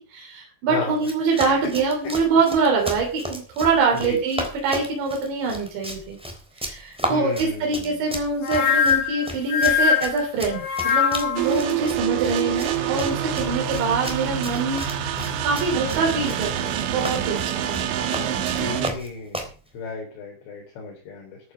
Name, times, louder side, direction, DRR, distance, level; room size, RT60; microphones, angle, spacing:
voice 1, 0.0-6.2 6.6-15.2 15.4-18.0, right 4 dB, 70° right, 0 dB, 5.6 m, -24 dB
voice 2, 0.7-1.0 3.9-4.2 7.1-8.0 18.2-18.3 18.6-19.5 19.7-21.4, left 3 dB, 65° left, -1 dB, 5.6 m, -33 dB
Run, 0.9-19.6, equal, ahead, 2.5 m, -35 dB
sound 1, 8.4-11.5, left 7 dB, 85° left, 5.2 m, -22 dB
sound 2, 11.4-18.9, right 10 dB, 85° right, 4.0 m, -26 dB
14.0 x 9.4 x 6.2 m, 0.39 s
omnidirectional pair, 5.5 m